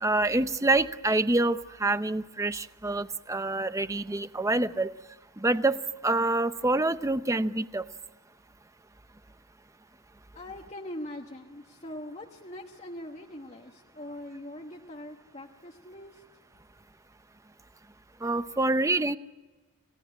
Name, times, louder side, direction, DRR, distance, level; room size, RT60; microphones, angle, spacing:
voice 1, 0.0-4.9 5.4-5.8 6.0-7.9 18.2-19.2, right 2 dB, 15° right, 12 dB, 0.7 m, -26 dB
voice 2, 10.3-16.6, left 1 dB, 30° left, 1 dB, 1.3 m, -42 dB
29.5 x 17.5 x 8.8 m, 1.2 s
head